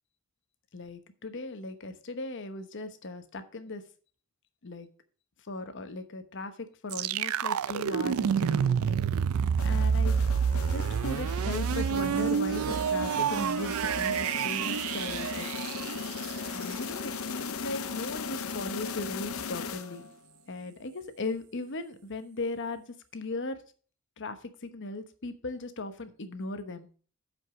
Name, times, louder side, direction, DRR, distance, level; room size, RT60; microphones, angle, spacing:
voice 1, 0.7-3.8 4.6-4.9 5.4-9.1 9.6-15.7 16.5-20.1 20.5-22.8 23.1-23.6 24.2-26.9, left 2 dB, 60° left, 9 dB, 1.0 m, -38 dB
sound 1, 6.9-16.7, right 7 dB, 75° right, 0.4 m, -28 dB
sound 2, 9.6-20.2, left 5 dB, 75° left, 0.7 m, -38 dB
8.0 x 5.3 x 5.9 m, 0.42 s
head